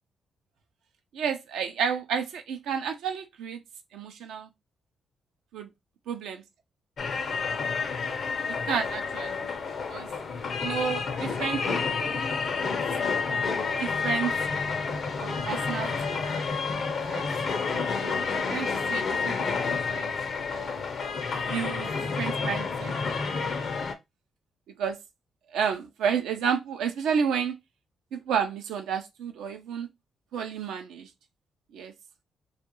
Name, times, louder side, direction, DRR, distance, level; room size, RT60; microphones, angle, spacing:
voice 1, 1.1-3.6 3.9-4.5 5.5-5.7 6.1-6.4 8.7-9.3 9.9-10.1 10.6-12.2 13.3-14.3 15.2-16.2 17.1-17.3 18.0-19.6 19.9-20.1 20.5-20.8 21.3-23.5 24.8-25.0 25.5-27.5 28.1-29.9 30.3-31.1 31.7-31.9, right 7 dB, 80° right, 0.5 m, -31 dB
sound 1, 7.0-23.9, left 5 dB, 60° left, 0.5 m, -29 dB
2.4 x 2.2 x 2.9 m
supercardioid pair, 55°, 0 cm